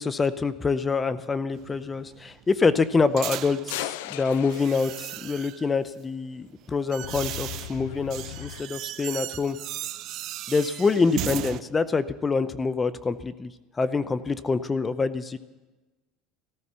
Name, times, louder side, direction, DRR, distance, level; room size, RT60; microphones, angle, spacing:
voice 1, 0.0-9.6 10.5-13.5 13.8-15.4, left 4 dB, 20° left, 14 dB, 0.6 m, -26 dB
sound 1, 1.5-3.9 4.5-5.7 6.4-11.6, right 14 dB, 55° right, 0.5 m, -37 dB
sound 2, 3.7-5.6 7.0-8.6, left 14 dB, 85° left, 0.5 m, -37 dB
14.0 x 13.5 x 6.9 m, 1.2 s
supercardioid pair, 120°, 0 cm